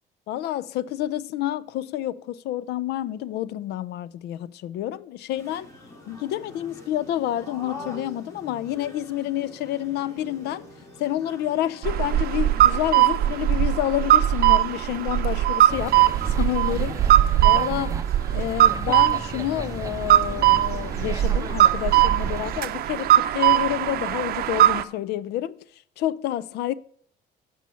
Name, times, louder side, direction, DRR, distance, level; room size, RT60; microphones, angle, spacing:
voice 1, 0.3-5.7 6.1-10.7 11.0-16.0 16.3-17.1 17.4-18.0 18.3-25.6 26.0-26.7, left 13 dB, 75° left, 0.5 m, -29 dB
sound 1, 5.3-21.9, left 1 dB, 15° left, 2.8 m, -45 dB
sound 2, 11.8-24.8, right 13 dB, 65° right, 0.6 m, -20 dB
sound 3, 15.7-22.6, right 4 dB, 20° right, 0.7 m, -35 dB
9.1 x 5.6 x 5.6 m
cardioid pair, 110°, 17 cm